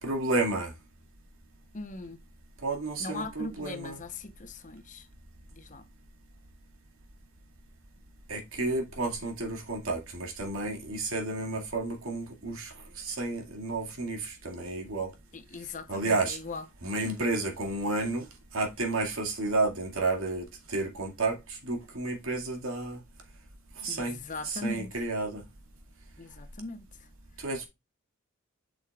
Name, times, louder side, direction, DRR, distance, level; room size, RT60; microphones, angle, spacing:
voice 1, 0.0-0.7 2.6-4.0 8.3-15.1 15.9-16.4 16.8-18.2 18.5-23.0 23.8-24.2 24.4-25.4 27.4-27.7, right 2 dB, 85° right, 2.2 m, -31 dB
voice 2, 1.7-2.2 3.0-5.1 5.5-5.8 15.3-16.7 23.9-24.9 26.2-26.9, left 2 dB, 40° left, 0.8 m, -39 dB
8.2 x 6.3 x 2.4 m
head